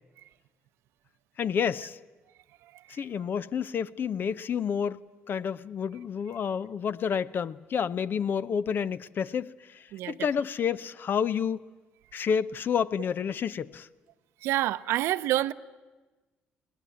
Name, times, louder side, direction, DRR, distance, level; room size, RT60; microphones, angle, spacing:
voice 1, 1.4-2.0 2.9-5.0 5.3-11.6 12.1-13.9, left 7 dB, 55° left, 0.7 m, -29 dB
voice 2, 14.4-15.5, right 15 dB, 80° right, 0.7 m, -27 dB
21.5 x 18.5 x 8.5 m
supercardioid pair, 75°, 4 cm